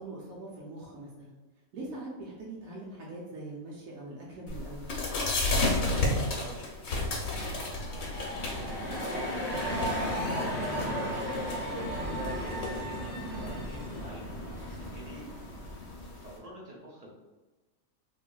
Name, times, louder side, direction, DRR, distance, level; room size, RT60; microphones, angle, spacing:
voice 1, 0.0-1.3 1.7-4.9 12.0-12.3, right 2 dB, 85° right, -5 dB, 1.0 m, -42 dB
sound 1, 4.5-16.4, left 2 dB, 75° left, 1.1 m, -34 dB
voice 2, 6.0-15.9 16.2-17.1, right 1 dB, 50° right, -5 dB, 0.4 m, -47 dB
sound 2, 7.6-16.3, equal, 35° left, 0.4 m, -35 dB
sound 3, 8.5-10.4 10.7-10.8 11.1-11.2 11.5-11.6 11.9-12.0 12.3-12.4 12.7-12.8 13.1-13.2 13.5-13.6, equal, 15° right, 1.2 m, -41 dB
3.1 x 2.6 x 2.2 m, 1.2 s
omnidirectional pair, 1.4 m